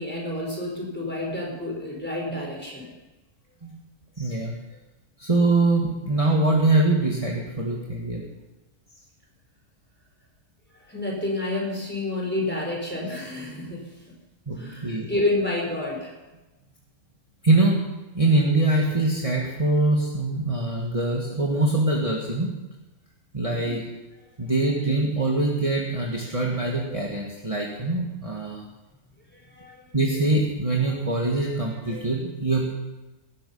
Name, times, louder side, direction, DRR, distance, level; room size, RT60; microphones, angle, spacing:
voice 1, 0.0-3.0 10.7-14.1 14.5-16.2 23.5-23.9 26.5-26.6 29.3-30.0 31.9-32.1, left 2 dB, 5° left, -1 dB, 4.3 m, -30 dB
voice 2, 4.2-4.6 5.2-8.2 14.5-15.1 17.4-17.8 18.1-22.5 23.3-23.8 24.4-28.7 29.9-32.7, right 2 dB, 25° right, -2 dB, 2.0 m, -23 dB
19.0 x 12.0 x 5.6 m, 1.1 s
omnidirectional pair, 1.5 m